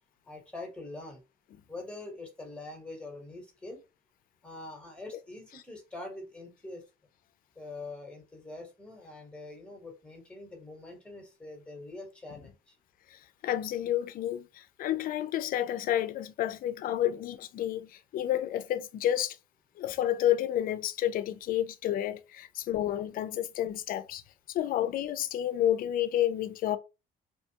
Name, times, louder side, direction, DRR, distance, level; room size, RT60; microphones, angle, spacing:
voice 1, 0.2-1.2 1.7-3.8 4.4-6.8 7.5-12.8, left 2 dB, 5° left, 1.1 m, -44 dB
voice 2, 13.1-19.4 19.8-24.2 24.5-26.8, left 12 dB, 55° left, 0.4 m, -30 dB
2.6 x 2.3 x 2.7 m
cardioid pair, 110°, 17 cm